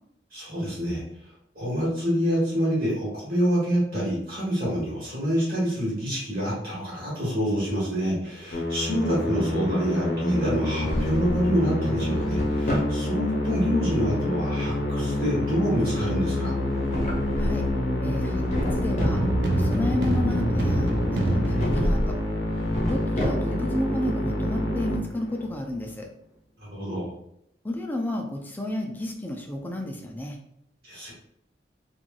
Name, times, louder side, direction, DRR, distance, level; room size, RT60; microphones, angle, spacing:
voice 1, 0.3-1.0 1.5-16.5 26.7-27.1 30.8-31.1, equal, 50° right, -6 dB, 1.4 m, -26 dB
Musical instrument, 8.5-25.6, left 1 dB, 70° left, 0.7 m, -27 dB
Drawer open or close, 10.5-11.5 11.9-13.0 16.6-17.7 18.1-19.2 21.4-22.1 22.5-23.7, equal, 40° left, 0.8 m, -30 dB
voice 2, 18.0-18.5 18.7-19.2 19.5-22.2 22.9-26.1 27.6-30.4, left 1 dB, 10° left, 2 dB, 0.3 m, -32 dB
sound 1, 19.0-23.0, right 1 dB, 65° right, 0.5 m, -27 dB
3.1 x 2.5 x 2.2 m, 0.76 s
head